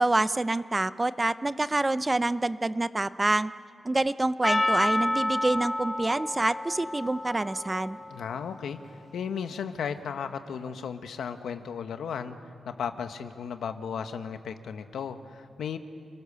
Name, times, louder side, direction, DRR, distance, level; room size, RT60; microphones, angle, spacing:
voice 1, 0.0-3.5 3.8-8.0, right 2 dB, 15° right, 14 dB, 0.5 m, -27 dB
Percussion, 4.4-9.0, left 1 dB, 15° left, 1.0 m, -30 dB
voice 2, 8.1-8.8 9.1-12.4 12.6-15.8, left 7 dB, 85° left, 8 dB, 1.3 m, -35 dB
29.5 x 20.5 x 6.9 m, 2.3 s
wide cardioid pair, 130°, 0 cm